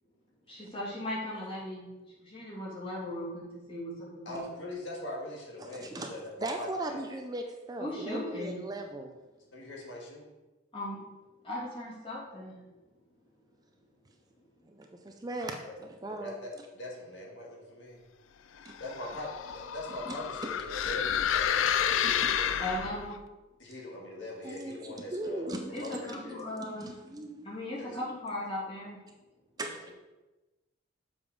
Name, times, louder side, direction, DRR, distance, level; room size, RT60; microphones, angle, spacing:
voice 1, 0.5-1.9 2.2-4.4 7.8-8.6 10.7-11.0 11.4-12.6 22.6-23.2 25.7-26.9 27.4-29.0, left 1 dB, 30° left, -6 dB, 2.6 m, -37 dB
voice 2, 4.3-7.0 9.5-10.3 15.6-15.8 16.1-18.0 18.8-22.5 23.6-26.4 27.7-28.0 29.6-29.7, left 1 dB, 65° left, -3 dB, 1.8 m, -42 dB
voice 3, 5.6-9.2 14.7-16.4 18.6-18.8 20.1-20.2 20.4-20.5 22.0-22.3 24.4-27.6 28.1-28.2 29.6-29.9, right 2 dB, 20° right, 3 dB, 0.5 m, -39 dB
sound 1, 18.7-23.2, left 9 dB, 80° left, 0.4 m, -30 dB
7.0 x 4.9 x 5.3 m, 1.1 s
head